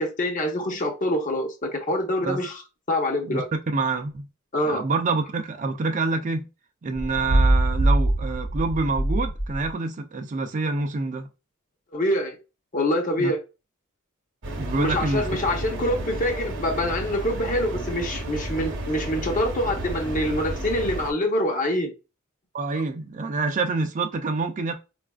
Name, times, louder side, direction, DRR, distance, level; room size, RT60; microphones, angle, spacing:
voice 1, 0.0-2.6 2.9-3.5 4.5-4.8 11.9-12.4 12.7-13.4 14.8-21.9, left 1 dB, 35° left, 0.7 m, -25 dB
voice 2, 3.2-4.3 4.6-6.5 6.8-11.3 13.2-13.3 14.6-15.3 22.5-24.7, right 3 dB, 35° right, 0.4 m, -27 dB
sound 1, 6.9-9.7, right 1 dB, 80° left, 1.2 m, -23 dB
sound 2, 14.4-21.1, right 1 dB, 55° right, 0.8 m, -32 dB
4.0 x 2.4 x 2.2 m
head